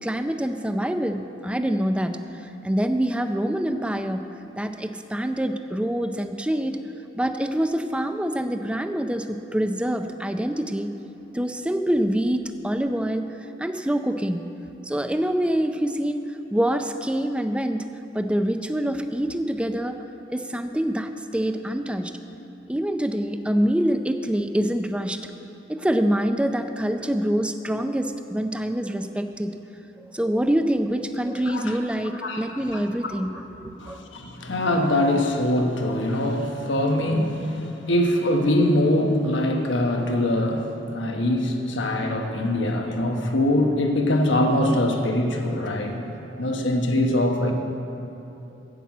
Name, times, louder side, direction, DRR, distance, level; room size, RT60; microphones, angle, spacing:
voice 1, 0.0-4.3 4.5-6.8 7.1-10.9 11.3-14.5 14.8-17.9 18.1-20.0 20.3-22.2 22.7-25.2 25.7-29.6 30.0-34.0, equal, 5° right, 7 dB, 0.4 m, -25 dB
voice 2, 32.2-32.8 33.8-46.1 46.4-47.5, left 1 dB, 90° left, 3 dB, 1.2 m, -23 dB
10.0 x 7.4 x 8.3 m, 2.9 s
head